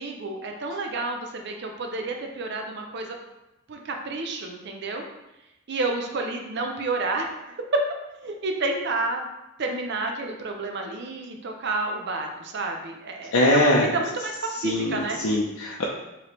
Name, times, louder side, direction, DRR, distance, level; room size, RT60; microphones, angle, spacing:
voice 1, 0.0-3.2 3.7-5.1 5.4-7.7 8.1-9.3 9.6-15.2, right 3 dB, 55° right, 3 dB, 0.6 m, -30 dB
voice 2, 13.3-13.9 14.6-15.0 15.2-15.9, left 1 dB, 85° left, -4 dB, 0.6 m, -21 dB
4.9 x 3.0 x 3.0 m, 0.96 s
head